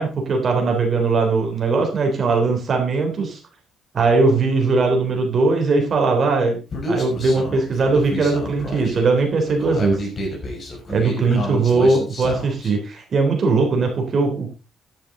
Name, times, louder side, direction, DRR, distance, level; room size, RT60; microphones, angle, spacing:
voice 1, 0.0-3.4 3.9-6.6 6.9-10.0 10.9-14.5, right 3 dB, 45° right, 2 dB, 3.3 m, -19 dB
Human voice, 6.7-12.7, left 1 dB, 40° left, 5.7 m, -30 dB
10.5 x 10.0 x 3.8 m, 0.32 s
cardioid pair, 90°, 0 cm